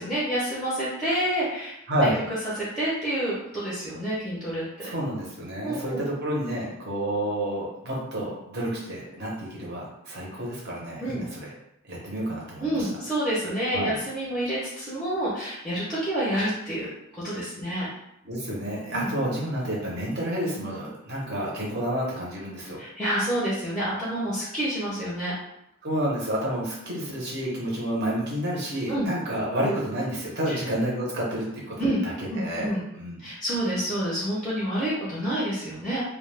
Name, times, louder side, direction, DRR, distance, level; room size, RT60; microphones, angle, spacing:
voice 1, 0.0-2.1 2.6-4.9 5.6-6.0 11.0-11.2 12.6-17.9 18.9-19.1 22.8-25.3 28.9-29.1 30.5-30.6 31.8-32.0 32.3-32.8 33.2-36.0, right 1 dB, ahead, -8 dB, 0.5 m, -28 dB
voice 2, 1.9-2.2 4.8-11.5 11.9-12.9 13.7-14.0 18.2-22.8 25.8-31.8 32.0-32.7 32.9-33.2, right 1 dB, 45° right, -5 dB, 0.8 m, -29 dB
2.2 x 2.2 x 3.2 m, 0.82 s
head